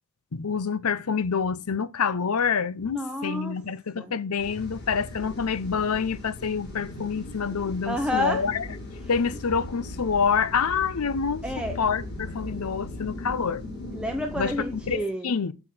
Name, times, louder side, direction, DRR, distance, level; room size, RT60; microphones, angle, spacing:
voice 1, 0.3-8.6 9.1-11.4 11.8-13.6 14.3-14.5 14.9-15.5, left 6 dB, 85° left, 0.7 m, -27 dB
voice 2, 2.9-3.6 4.0-4.1 7.9-8.4 11.4-11.8 13.9-15.3, equal, 5° right, 0.8 m, -29 dB
sound 1, 4.4-15.0, left 2 dB, 50° left, 4.9 m, -38 dB
8.7 x 6.0 x 6.0 m
head